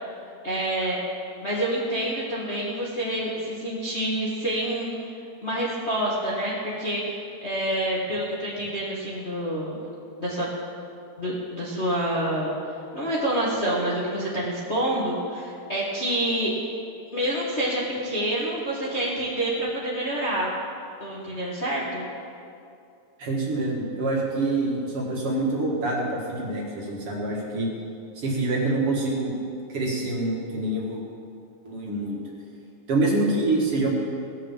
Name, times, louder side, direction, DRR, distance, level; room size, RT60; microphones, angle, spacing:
voice 1, 0.4-1.0 1.4-4.9 5.4-9.8 10.2-10.5 11.2-12.5 12.9-16.5 17.1-20.5 21.0-22.1, right 1 dB, 30° left, -6 dB, 1.4 m, -27 dB
voice 2, 23.2-27.7 28.2-29.3 29.7-31.0 31.6-32.2 32.9-33.9, right 2 dB, 50° right, -3 dB, 2.5 m, -26 dB
18.0 x 6.4 x 7.3 m, 2.5 s
omnidirectional pair, 3.6 m